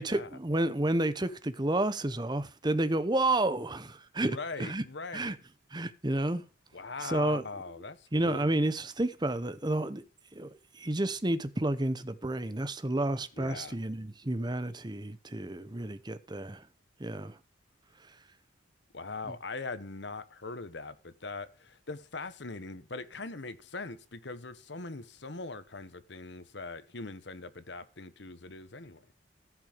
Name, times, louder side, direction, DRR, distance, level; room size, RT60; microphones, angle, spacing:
voice 1, 0.0-4.8 5.1-5.4 5.7-6.4 7.0-7.4 8.1-10.0 10.3-10.5 10.7-16.7 17.0-17.4, right 1 dB, 20° right, 0.9 m, -30 dB
voice 2, 4.2-5.3 6.7-8.5 13.4-13.7 18.9-29.0, left 3 dB, 65° left, 1.1 m, -41 dB
15.0 x 6.1 x 5.2 m
head